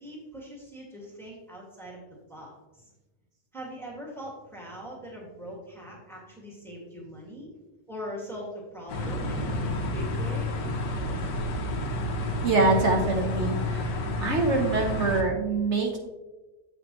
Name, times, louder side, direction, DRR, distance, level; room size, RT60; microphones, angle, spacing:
voice 1, 0.0-2.0 2.3-2.9 3.5-7.5 7.9-10.5, equal, ahead, -4 dB, 2.0 m, -41 dB
sound 1, 8.9-15.2, left 1 dB, 85° left, 1.7 m, -30 dB
voice 2, 12.4-13.9 14.2-16.0, right 3 dB, 50° right, 1 dB, 1.1 m, -24 dB
8.0 x 7.7 x 3.1 m, 1.1 s
omnidirectional pair, 1.8 m